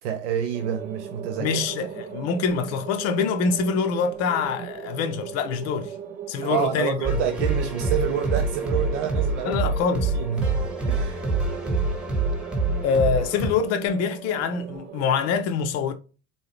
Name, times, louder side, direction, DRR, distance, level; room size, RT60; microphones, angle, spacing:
voice 1, 0.0-1.6 6.4-9.6 10.1-10.5 10.9-11.2, right 8 dB, 65° right, 0.6 m, -28 dB
sound 1, 0.5-15.2, right 8 dB, 25° right, 0.3 m, -39 dB
voice 2, 1.4-5.9 6.3-7.0 9.4-10.1 12.8-15.9, left 6 dB, 40° left, 0.6 m, -25 dB
sound 2, 7.0-13.5, right 3 dB, ahead, 1.1 m, -26 dB
4.0 x 2.8 x 3.1 m
figure-of-eight pair, 65°, 39 cm